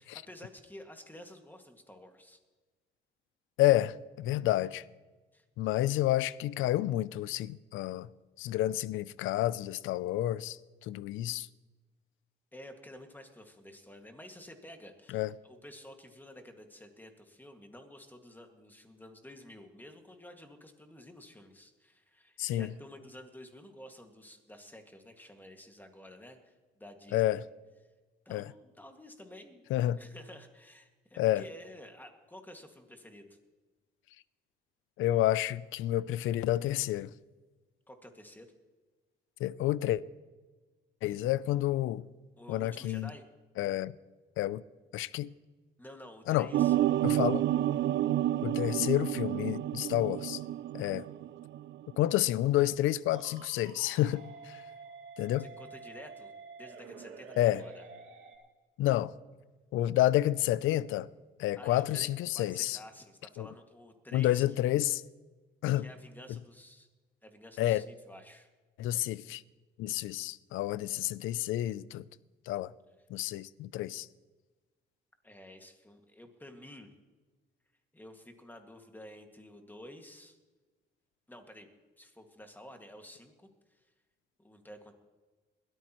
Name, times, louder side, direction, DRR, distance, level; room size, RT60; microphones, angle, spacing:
voice 1, 0.0-2.4 5.3-5.9 12.5-27.4 28.3-29.7 29.9-33.4 37.9-38.5 41.1-41.2 42.4-43.2 45.8-46.7 55.4-56.3 56.6-57.9 61.6-64.4 65.8-66.9 67.2-68.5 75.2-76.9 77.9-80.4 81.3-81.7 82.0-83.9 84.4-84.9, left 1 dB, 10° left, 2.0 m, -51 dB
voice 2, 3.6-4.8 5.6-8.1 8.4-11.5 15.1-15.3 22.4-22.7 27.1-27.4 28.3-28.5 29.7-30.0 31.2-31.4 35.0-37.1 39.4-40.0 41.0-42.0 42.5-43.1 43.6-43.9 44.4-44.6 44.9-45.3 46.3-46.5 47.0-47.4 48.4-50.4 50.7-51.0 52.0-54.6 55.2-55.5 57.4-57.6 58.8-59.1 59.7-61.1 61.4-62.8 63.4-63.5 64.1-65.0 65.6-65.9 67.6-67.8 68.8-69.4 69.8-72.0 72.5-72.7 73.1-74.1, left 14 dB, 85° left, 0.5 m, -29 dB
sound 1, 46.5-51.8 52.1-52.5, right 13 dB, 65° right, 0.4 m, -30 dB
sound 2, 53.1-58.4, right 5 dB, 85° right, 2.1 m, -49 dB
21.0 x 13.5 x 3.1 m
cardioid pair, 90°, 20 cm